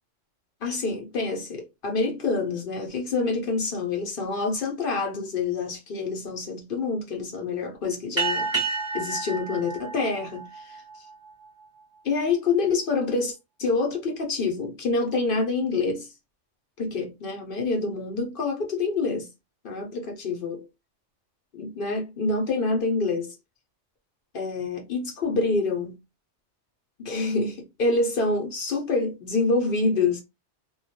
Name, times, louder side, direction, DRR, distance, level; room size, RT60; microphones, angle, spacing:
voice 1, 0.6-8.6 8.9-11.1 12.0-16.1 16.8-19.3 19.6-20.7 21.5-23.4 24.3-26.0 27.0-30.2, left 3 dB, 55° left, 0.7 m, -27 dB
sound 1, 8.2-11.1, right 4 dB, 25° right, 1.1 m, -30 dB
2.3 x 2.2 x 2.7 m
omnidirectional pair, 1.2 m